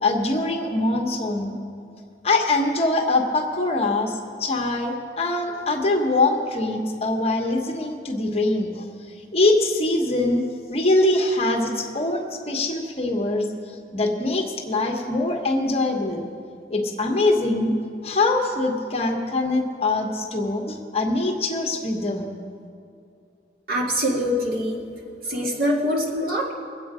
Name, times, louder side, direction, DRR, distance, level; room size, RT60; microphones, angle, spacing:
voice 1, 0.0-1.5 2.2-8.9 9.3-10.4 10.7-16.3 16.7-17.7 18.0-22.3, left 2 dB, 35° left, 2 dB, 1.1 m, -23 dB
voice 2, 23.7-24.8 25.2-26.5, equal, 55° right, -3 dB, 2.2 m, -24 dB
22.0 x 8.2 x 4.9 m, 2.5 s
head